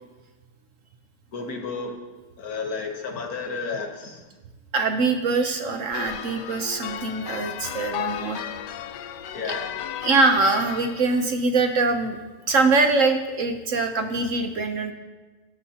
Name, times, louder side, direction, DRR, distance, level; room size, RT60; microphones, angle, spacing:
voice 1, 1.3-1.9 2.4-4.2 9.3-9.8, left 4 dB, 65° left, 4 dB, 1.6 m, -32 dB
voice 2, 4.7-8.5 10.0-12.2 12.5-14.9, right 3 dB, 60° right, 6 dB, 1.0 m, -23 dB
sound 1, 5.9-11.3, left 11 dB, 85° left, 1.2 m, -34 dB
18.0 x 8.2 x 2.9 m, 1.2 s
omnidirectional pair, 1.8 m